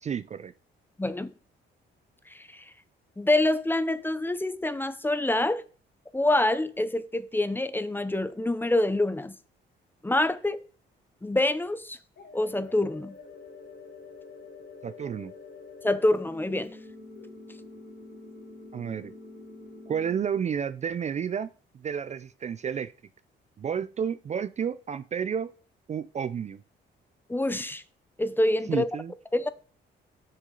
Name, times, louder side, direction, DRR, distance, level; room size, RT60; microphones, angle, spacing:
voice 1, 0.0-0.5 14.8-15.3 18.7-19.1 19.9-21.5 21.7-22.9 23.6-25.5 25.9-26.6 28.7-29.1, right 7 dB, 35° right, 0.4 m, -31 dB
voice 2, 1.0-1.3 2.3-2.6 3.2-5.6 6.1-9.3 10.0-10.6 11.2-12.0 12.3-13.1 15.8-16.8 27.3-27.8 28.2-28.9 29.3-29.5, left 1 dB, 10° left, 0.6 m, -26 dB
sound 1, 12.2-20.2, left 3 dB, 70° left, 3.4 m, -46 dB
6.9 x 6.4 x 3.8 m
cardioid pair, 90°, 20 cm